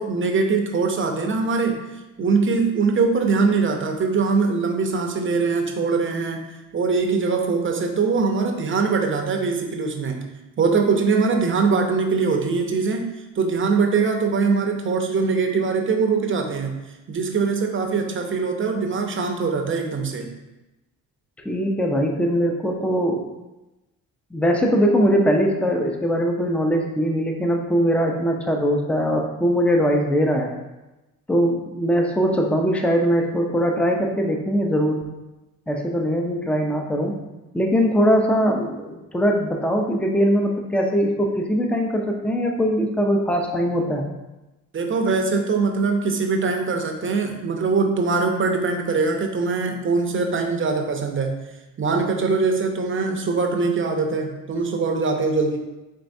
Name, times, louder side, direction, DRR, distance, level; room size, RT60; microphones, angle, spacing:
voice 1, 0.0-1.8 2.2-6.5 6.7-10.3 10.6-13.1 13.4-16.8 17.1-20.3 44.7-51.4 51.8-55.6, right 4 dB, 35° right, 3 dB, 0.7 m, -22 dB
voice 2, 21.4-23.2 24.3-30.5 31.3-35.0 35.7-37.1 37.5-44.1, equal, 5° left, 2 dB, 0.5 m, -21 dB
4.4 x 3.2 x 2.6 m, 1.0 s
supercardioid pair, 70°, 35 cm